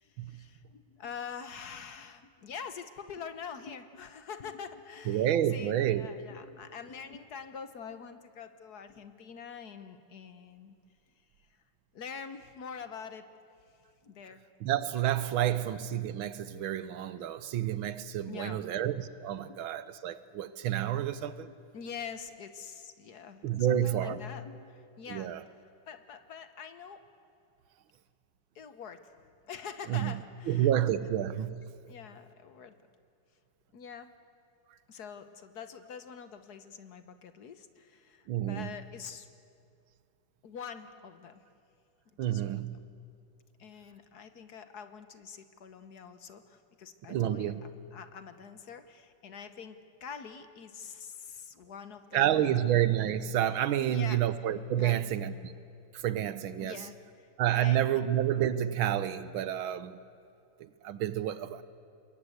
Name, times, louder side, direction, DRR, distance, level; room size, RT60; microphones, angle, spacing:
voice 1, 0.0-10.7 11.9-13.2 14.0-14.4 15.5-15.7 18.3-18.8 19.5-19.6 20.9-21.0 21.4-25.3 25.9-27.0 28.5-29.1 29.5-30.7 31.9-32.7 33.7-34.1 34.9-39.3 40.4-41.4 42.2-42.6 43.6-52.7 53.8-54.2 54.8-55.1 56.6-57.8, left 6 dB, 55° left, 1.6 m, -45 dB
voice 2, 5.1-6.1 14.6-21.5 23.4-24.2 25.1-25.4 29.9-30.1 30.5-31.7 38.3-38.7 42.2-42.8 47.1-47.6 52.1-55.5 55.9-56.8 57.4-60.0 60.6-61.6, right 11 dB, 85° right, 1.8 m, -29 dB
27.0 x 22.0 x 8.1 m
omnidirectional pair, 2.2 m